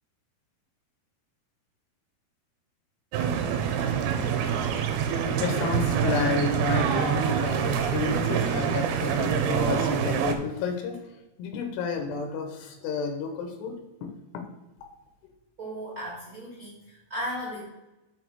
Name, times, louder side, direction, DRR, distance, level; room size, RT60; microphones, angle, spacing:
sound 1, 3.1-10.4, right 7 dB, 80° right, 2.6 m, -26 dB
voice 1, 4.7-11.1 11.4-13.8 14.0-14.4, left 5 dB, 85° left, 5 dB, 3.1 m, -31 dB
voice 2, 15.6-17.6, equal, 40° right, -5 dB, 1.3 m, -36 dB
6.1 x 6.0 x 4.6 m, 1.0 s
omnidirectional pair, 4.7 m